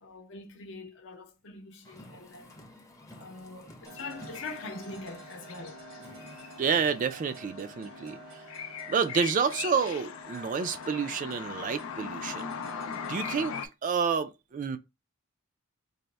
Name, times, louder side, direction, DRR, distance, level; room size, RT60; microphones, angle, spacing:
voice 1, 0.0-2.6 3.1-5.8, left 3 dB, 65° left, 0.7 m, -44 dB
Car, 1.8-7.5, left 1 dB, 15° left, 0.6 m, -52 dB
sound 1, 3.9-13.5, right 2 dB, 80° right, 1.2 m, -49 dB
sound 2, 4.0-13.7, left 7 dB, 90° left, 0.4 m, -41 dB
voice 2, 6.6-8.4 8.9-12.6 13.1-13.5 13.8-14.8, right 6 dB, 40° right, 0.3 m, -29 dB
4.0 x 2.0 x 3.3 m
head